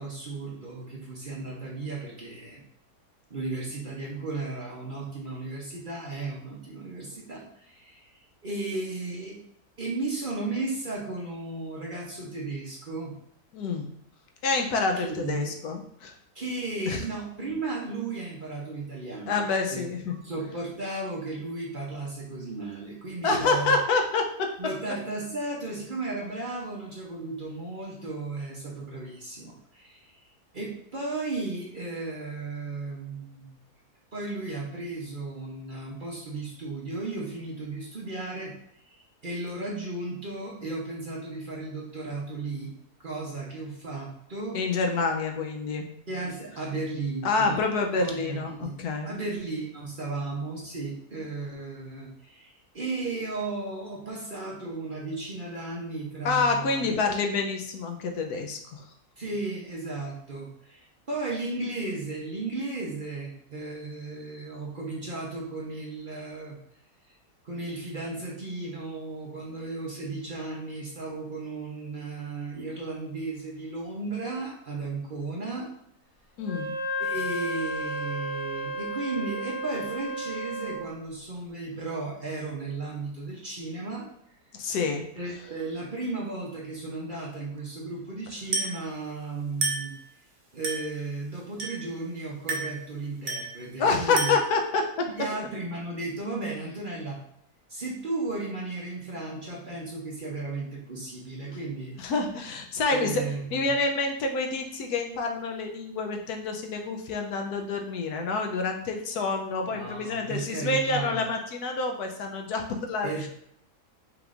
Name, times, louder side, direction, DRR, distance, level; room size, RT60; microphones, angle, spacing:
voice 1, 0.0-2.6 3.3-8.1 8.4-9.4 9.8-13.2 15.0-15.5 16.3-19.4 19.7-19.8 20.2-23.8 24.6-30.1 30.5-33.6 34.1-38.5 38.9-42.7 43.0-44.6 46.1-47.7 48.0-48.8 49.0-57.0 59.2-66.6 67.4-75.7 77.0-84.1 85.1-89.9 90.5-94.3 95.2-97.2 97.7-101.9 102.9-103.7 109.7-111.2 113.0-113.3, right 3 dB, 40° right, -3 dB, 0.9 m, -35 dB
voice 2, 13.5-13.9 14.4-16.2 16.9-17.0 19.3-20.1 23.2-24.5 44.5-45.9 47.2-49.1 56.2-58.9 76.4-76.7 84.5-85.3 93.8-95.1 102.0-103.2 103.5-113.3, left 3 dB, 80° left, 4 dB, 1.2 m, -27 dB
Wind instrument woodwind instrument, 76.4-80.9, equal, 40° left, 0.9 m, -33 dB
Glass, 88.5-88.9 89.6-90.0 90.6-91.0 91.6-91.9 92.5-92.8 93.3-93.6 94.2-94.6, right 3 dB, 70° right, 1.7 m, -30 dB
5.8 x 3.6 x 2.5 m, 0.73 s
omnidirectional pair, 1.6 m